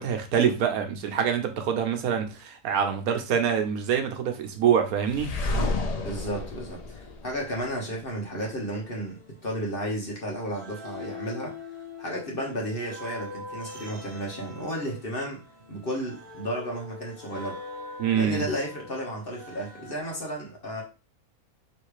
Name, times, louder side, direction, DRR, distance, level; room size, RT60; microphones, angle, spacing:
voice 1, 0.0-5.3 18.0-18.5, right 7 dB, 80° right, 1.2 m, -25 dB
sound 1, 5.1-8.0, left 2 dB, 60° left, 0.4 m, -31 dB
voice 2, 6.0-11.5 12.0-15.4 15.7-17.6 18.1-20.8, equal, 40° left, 1.4 m, -33 dB
sound 2, 8.7-10.1 10.5-20.2, left 3 dB, 20° right, 1.3 m, -43 dB
3.3 x 3.2 x 4.8 m
omnidirectional pair, 1.5 m